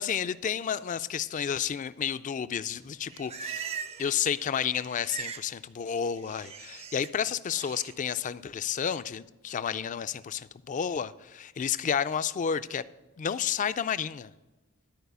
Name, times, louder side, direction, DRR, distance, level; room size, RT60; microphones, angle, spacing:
voice 1, 0.0-12.8 13.2-14.3, left 8 dB, 35° left, 0.3 m, -31 dB
Livestock farm animals working animals, 2.8-4.2 4.4-5.5 5.8-7.1 7.5-7.9, right 7 dB, 30° right, 0.4 m, -40 dB
12.5 x 4.8 x 8.0 m
head